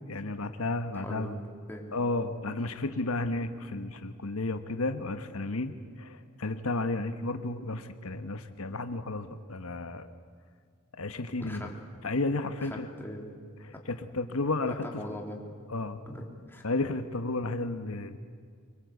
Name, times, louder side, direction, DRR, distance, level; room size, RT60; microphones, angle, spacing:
voice 1, 0.1-1.4 1.9-5.7 6.0-10.1 11.0-11.7 12.0-12.9 13.6-15.0 15.7-16.0 16.6-18.2, left 2 dB, 85° left, 8 dB, 1.2 m, -32 dB
voice 2, 0.9-1.4 1.7-1.9 11.4-11.8 12.6-13.3 14.7-15.4 16.1-16.6, left 1 dB, 10° left, 0 dB, 3.2 m, -41 dB
25.0 x 23.0 x 8.3 m, 2.1 s
head